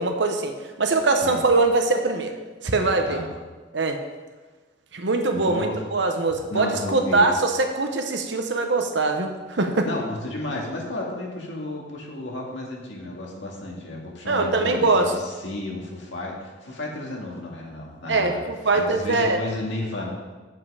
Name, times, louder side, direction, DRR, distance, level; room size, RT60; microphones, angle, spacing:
voice 1, 0.0-2.4 2.6-3.2 3.7-4.0 4.9-9.9 14.3-15.1 18.1-19.4, right 3 dB, 65° right, 5 dB, 1.0 m, -22 dB
voice 2, 5.3-5.8 6.5-7.2 9.8-20.1, left 2 dB, 70° left, -2 dB, 2.0 m, -33 dB
7.7 x 7.6 x 4.9 m, 1.3 s
head